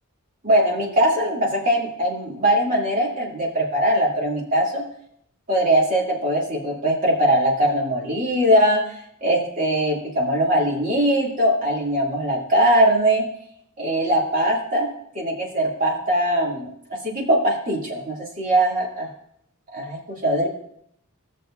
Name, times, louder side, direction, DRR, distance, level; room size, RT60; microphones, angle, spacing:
voice 1, 0.4-4.8 5.5-8.8 9.2-13.3 13.8-19.1 19.7-20.5, right 1 dB, 40° right, -3 dB, 2.4 m, -21 dB
17.0 x 6.6 x 2.5 m, 0.71 s
head